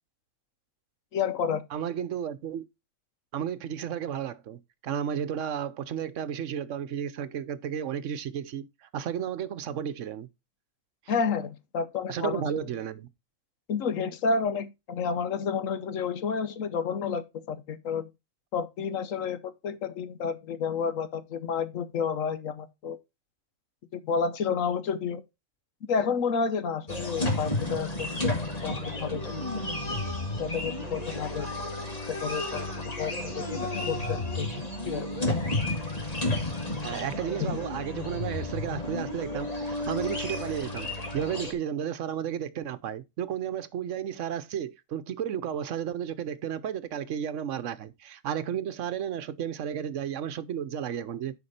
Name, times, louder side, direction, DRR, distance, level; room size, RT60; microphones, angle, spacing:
voice 1, 1.1-1.6 11.1-12.4 13.7-18.1 18.5-23.0 23.9-25.2 25.9-28.3 28.6-29.5 30.4-31.5 32.1-34.5 34.8-35.1 37.4-37.6, left 6 dB, 80° left, 1.2 m, -30 dB
voice 2, 1.7-2.6 3.3-8.7 8.9-10.3 12.1-13.1 36.8-51.4, right 9 dB, 70° right, 1.1 m, -33 dB
sound 1, 26.9-41.5, left 2 dB, 30° left, 1.9 m, -32 dB
9.6 x 5.2 x 4.2 m
omnidirectional pair, 1.4 m